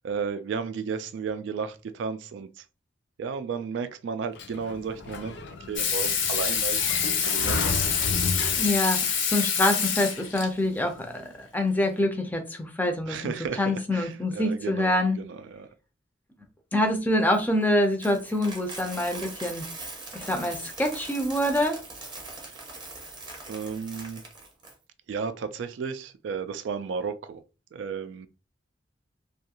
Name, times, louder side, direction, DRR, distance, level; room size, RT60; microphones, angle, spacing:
voice 1, 0.0-2.6 3.2-7.8 13.1-15.7 22.5-22.6 23.5-24.2 25.1-27.4 27.7-28.3, right 6 dB, 75° right, 0.3 m, -33 dB
Sliding door, 4.4-9.0, left 3 dB, 65° left, 0.4 m, -33 dB
Water tap faucet / Sink (filling or washing), 5.8-10.5 12.0-12.1, left 7 dB, 85° left, 0.8 m, -26 dB
voice 2, 8.6-13.3 13.6-15.2 16.7-19.6 20.1-21.8, left 1 dB, 10° left, 0.4 m, -26 dB
Coin (dropping), 17.3-24.7, right 3 dB, 25° right, 0.7 m, -41 dB
2.6 x 2.3 x 2.8 m
head